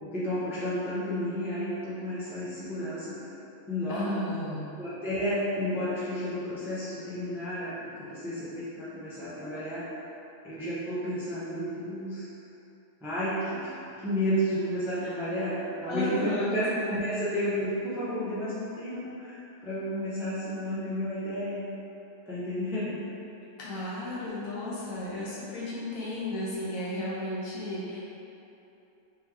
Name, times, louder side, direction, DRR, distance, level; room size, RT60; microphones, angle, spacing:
voice 1, 0.0-3.2 3.7-4.2 4.8-9.9 10.4-12.3 13.0-21.6 22.3-23.0, equal, ahead, -11 dB, 0.5 m, -32 dB
voice 2, 3.9-4.6 15.0-15.2 15.9-17.0 23.6-28.1, left 1 dB, 70° left, -7 dB, 1.2 m, -34 dB
3.4 x 3.1 x 3.5 m, 2.9 s
omnidirectional pair, 1.5 m